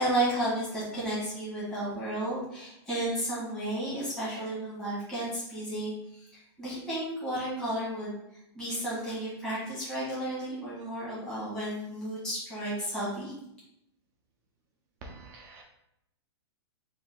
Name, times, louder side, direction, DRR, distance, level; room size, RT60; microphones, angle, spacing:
voice 1, 0.0-6.3 6.6-8.1 8.5-13.3, right 1 dB, 5° left, -11 dB, 1.6 m, -32 dB
voice 2, 15.0-15.6, right 2 dB, 20° right, 0 dB, 0.5 m, -46 dB
4.5 x 2.6 x 3.7 m, 0.81 s
supercardioid pair, 170°, 14 cm